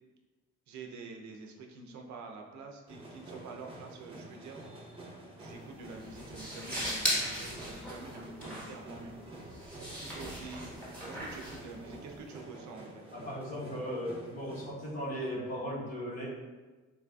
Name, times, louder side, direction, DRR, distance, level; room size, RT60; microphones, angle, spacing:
voice 1, 0.7-4.6 5.3-9.2 9.7-10.7 11.1-13.0, right 3 dB, 70° right, 2 dB, 0.6 m, -47 dB
sound 1, 2.9-14.7, right 1 dB, 15° right, 0.8 m, -49 dB
sound 2, 5.5-12.3, equal, 5° left, 1.2 m, -38 dB
voice 2, 13.1-16.3, equal, 55° left, -6 dB, 1.2 m, -37 dB
3.8 x 2.5 x 2.3 m, 1.3 s
cardioid pair, 90°, 30 cm